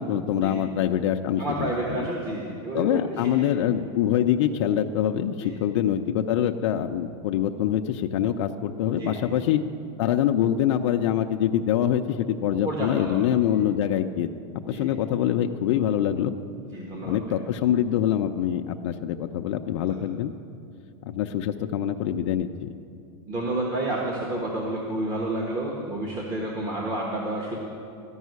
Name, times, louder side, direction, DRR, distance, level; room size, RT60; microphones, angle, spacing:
voice 1, 0.0-2.0 2.7-9.6 10.0-14.3 14.7-16.3 17.0-20.3 21.1-22.7, left 10 dB, 70° left, 5 dB, 0.5 m, -25 dB
voice 2, 1.4-3.0 3.4-3.5 5.4-5.6 9.0-9.3 12.6-13.6 14.7-14.9 16.7-17.4 19.9-20.1 23.3-27.6, right 2 dB, 25° right, -2 dB, 1.3 m, -30 dB
13.5 x 5.5 x 9.4 m, 2.5 s
supercardioid pair, 150°, 16 cm